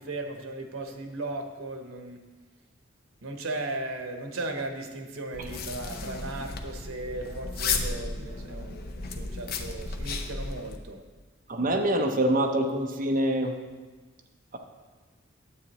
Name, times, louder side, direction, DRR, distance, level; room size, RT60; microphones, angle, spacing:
voice 1, 0.0-2.2 3.2-11.0, right 2 dB, 85° right, 4 dB, 1.0 m, -36 dB
sound 1, 5.3-10.8, left 4 dB, 45° left, 0.6 m, -34 dB
voice 2, 11.5-13.5, right 1 dB, 40° right, 3 dB, 0.7 m, -25 dB
9.6 x 8.2 x 3.0 m, 1.3 s
head